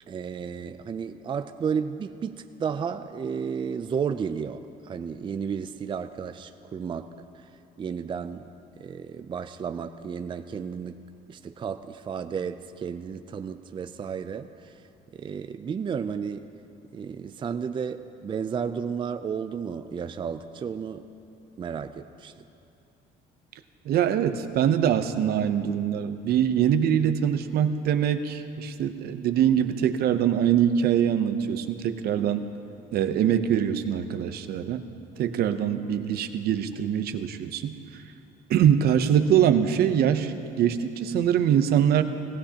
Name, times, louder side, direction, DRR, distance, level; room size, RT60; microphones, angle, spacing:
voice 1, 0.1-7.1 7.8-8.5 8.8-11.0 11.3-14.8 15.1-16.4 16.9-21.0 21.6-22.3, right 6 dB, 30° right, 9 dB, 0.4 m, -32 dB
voice 2, 23.9-32.4 32.9-34.8 35.2-37.7 38.5-42.0, right 9 dB, 70° right, 9 dB, 0.7 m, -23 dB
18.5 x 15.5 x 2.9 m, 2.6 s
cardioid pair, 110°, 17 cm